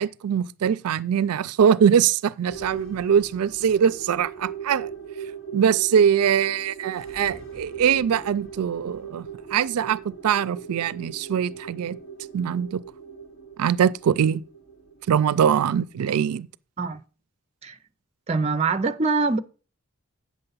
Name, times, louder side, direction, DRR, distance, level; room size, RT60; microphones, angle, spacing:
voice 1, 0.0-4.9 5.5-12.0 12.3-12.8 13.6-14.4 15.1-16.5, right 8 dB, 90° right, 0.4 m, -22 dB
sound 1, 2.5-16.1, right 7 dB, 65° left, 3.0 m, -40 dB
voice 2, 18.3-19.4, right 3 dB, 30° right, 0.5 m, -23 dB
8.6 x 6.8 x 5.4 m
head